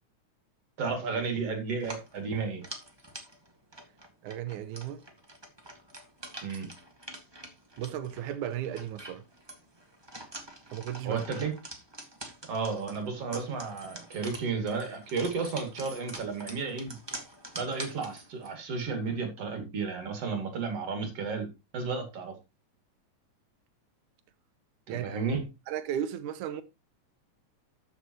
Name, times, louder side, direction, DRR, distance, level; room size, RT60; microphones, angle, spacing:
voice 1, 0.8-2.6 6.4-6.7 11.0-11.5 12.5-17.0 17.5-22.3 24.9-25.5, right 4 dB, 55° right, 3.5 m, -33 dB
sound 1, 1.7-18.5, right 1 dB, 10° right, 1.2 m, -46 dB
voice 2, 4.2-5.0 7.8-9.2 10.7-11.2 24.9-25.2 25.7-26.6, right 10 dB, 85° right, 2.4 m, -35 dB
13.0 x 7.4 x 3.0 m
omnidirectional pair, 3.5 m